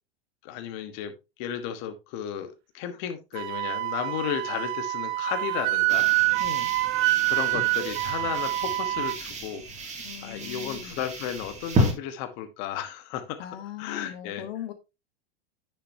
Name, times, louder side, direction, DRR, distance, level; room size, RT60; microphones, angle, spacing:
voice 1, 0.4-1.1 1.4-6.1 7.3-9.6 10.2-13.4 13.8-14.4, left 9 dB, 50° left, 9 dB, 1.3 m, -34 dB
Wind instrument woodwind instrument, 3.3-9.2, right 19 dB, 40° right, 0.7 m, -26 dB
sound 1, 5.9-11.9, right 1 dB, 20° right, 2.3 m, -32 dB
voice 2, 6.4-6.7 10.0-11.0 13.4-14.7, left 11 dB, 70° left, 10 dB, 1.3 m, -39 dB
9.5 x 6.9 x 2.7 m, 0.25 s
supercardioid pair, 130°, 31 cm